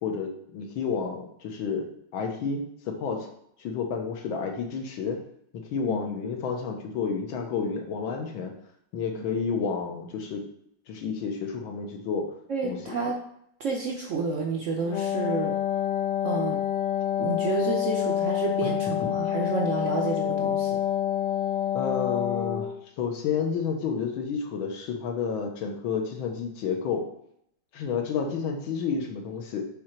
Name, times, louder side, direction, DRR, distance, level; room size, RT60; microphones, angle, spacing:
voice 1, 0.0-3.3 3.6-5.2 5.7-8.5 8.9-10.4 10.9-12.3 12.6-12.9 18.6-19.1 21.8-22.7 23.0-27.1 27.7-29.7, left 6 dB, 90° left, 3 dB, 1.8 m, -30 dB
voice 2, 12.5-13.2 13.6-15.6 16.2-16.6 17.2-20.8, right 4 dB, 75° right, 0 dB, 0.7 m, -30 dB
Wind instrument woodwind instrument, 14.8-22.8, left 10 dB, 70° left, 1.5 m, -27 dB
6.4 x 3.8 x 4.4 m, 0.71 s
omnidirectional pair, 2.1 m